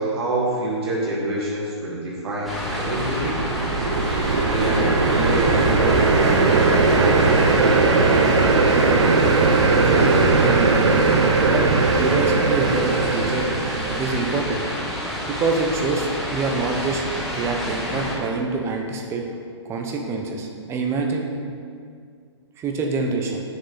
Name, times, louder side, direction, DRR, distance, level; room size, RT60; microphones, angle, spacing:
voice 1, 0.0-3.4 4.5-7.3 7.6-7.8, right 1 dB, 60° right, -5 dB, 1.9 m, -26 dB
sound 1, 2.4-18.1, equal, ahead, 1.6 m, -29 dB
sound 2, 2.8-14.2, right 4 dB, 75° right, 0.8 m, -19 dB
voice 2, 9.9-10.7 11.4-11.7 11.9-13.5 13.8-14.6 15.2-17.0 17.3-19.2 19.6-21.3 22.6-23.4, right 3 dB, 15° right, 2 dB, 0.8 m, -26 dB
7.6 x 6.5 x 4.1 m, 2.2 s
hypercardioid pair, 130°, 15 cm